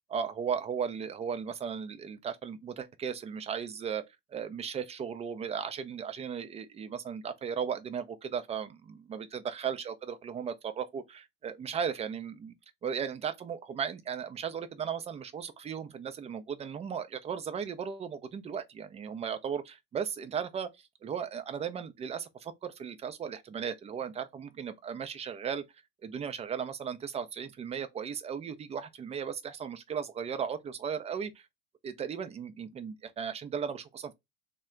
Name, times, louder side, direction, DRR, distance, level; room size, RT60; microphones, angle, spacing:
voice 1, 0.1-4.0 4.3-12.5 12.8-25.6 26.0-31.5 31.8-34.1, right 7 dB, 15° right, 0.4 m, -36 dB
3.4 x 2.1 x 3.6 m
hypercardioid pair, 80°, 39 cm